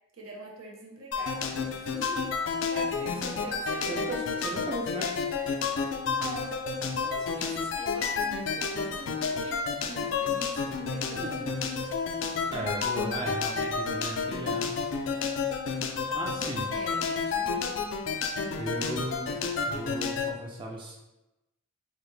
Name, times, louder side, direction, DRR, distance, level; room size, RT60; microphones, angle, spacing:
voice 1, 0.1-4.1 6.0-6.6 6.9-11.8 16.7-17.7, right 2 dB, 85° right, -1 dB, 0.8 m, -44 dB
sound 1, 1.1-20.3, left 5 dB, 65° left, 0.4 m, -31 dB
voice 2, 2.9-3.4 3.8-5.2 11.2-11.5 12.5-14.8 16.1-16.7 18.6-19.4 19.7-21.0, right 1 dB, 25° right, -2 dB, 0.4 m, -36 dB
4.7 x 2.1 x 3.2 m, 0.97 s
head